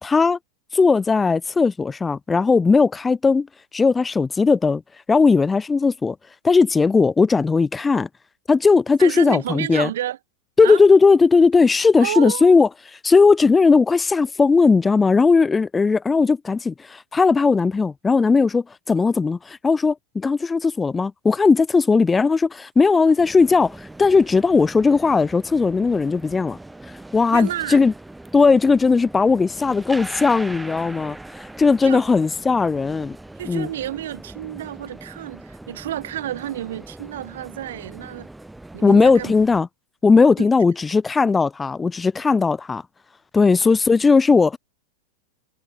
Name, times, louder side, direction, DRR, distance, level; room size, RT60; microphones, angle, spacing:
voice 1, 0.0-0.4 0.7-3.5 3.7-4.8 5.1-6.2 6.4-8.1 8.5-9.9 10.6-26.6 27.1-27.9 28.3-33.2 33.4-33.7 38.8-39.7 40.0-42.8 43.3-44.6, left 4 dB, 15° left, 1.0 m, -17 dB
voice 2, 9.0-10.2 10.6-10.8 12.0-12.6 22.9-23.2 27.3-27.8 31.8-32.2 33.4-38.3 38.7-39.3 40.4-40.5 43.6-43.7, right 12 dB, 60° right, 5.4 m, -30 dB
sound 1, 23.2-39.6, right 2 dB, 5° right, 3.5 m, -40 dB
figure-of-eight pair, 90°, 0 cm